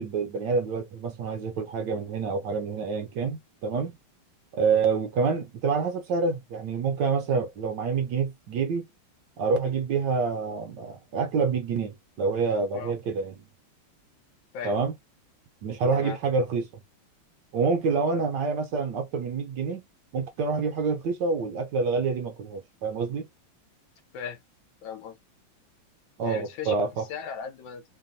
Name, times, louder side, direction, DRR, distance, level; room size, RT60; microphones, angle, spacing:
voice 1, 0.0-4.0 4.5-8.9 9.4-13.5 14.6-14.9 15.6-16.7 17.5-19.8 20.1-23.3 26.2-27.0, right 5 dB, 70° right, 1.1 m, -27 dB
voice 2, 24.8-25.2 26.2-27.8, left 7 dB, 75° left, 1.4 m, -37 dB
3.4 x 2.2 x 2.6 m
omnidirectional pair, 2.3 m